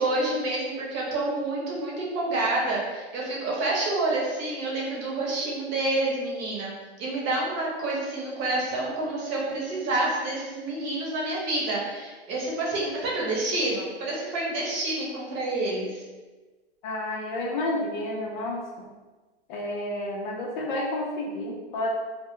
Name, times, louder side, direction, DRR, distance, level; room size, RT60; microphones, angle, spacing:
voice 1, 0.0-6.7 7.0-16.0, right 2 dB, 35° right, -4 dB, 0.9 m, -28 dB
voice 2, 16.8-18.7 19.5-21.9, left 1 dB, 45° left, -1 dB, 0.6 m, -30 dB
2.2 x 2.1 x 3.7 m, 1.3 s
hypercardioid pair, 130°, 33 cm